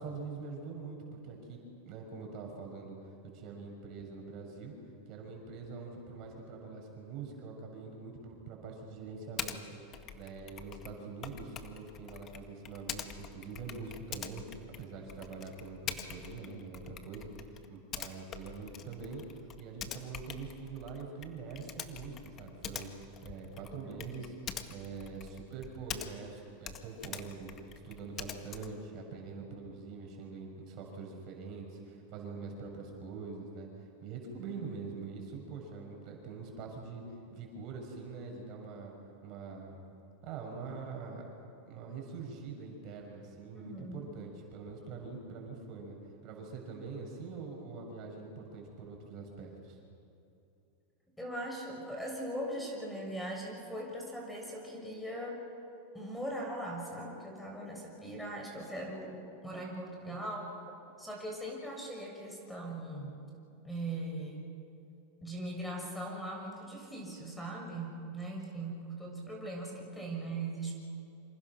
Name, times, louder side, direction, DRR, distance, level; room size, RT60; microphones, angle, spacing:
voice 1, 0.0-1.6 1.8-2.9 3.3-4.7 5.1-9.6 9.9-19.2 19.6-22.9 23.2-27.5 27.8-33.7 34.0-37.0 37.3-38.9 39.2-39.8 40.2-41.4 41.7-46.0 46.2-49.8, right 4 dB, 50° right, 1 dB, 6.7 m, -44 dB
Typing, 9.4-9.6 9.9-26.4 26.6-28.8, left 8 dB, 35° left, 1.8 m, -45 dB
voice 2, 43.5-44.1 51.2-55.4 55.9-63.2 63.6-64.5 65.2-70.7, right 1 dB, 5° left, -1 dB, 6.5 m, -40 dB
27.5 x 26.5 x 6.3 m, 2.8 s
hypercardioid pair, 105°, 0 cm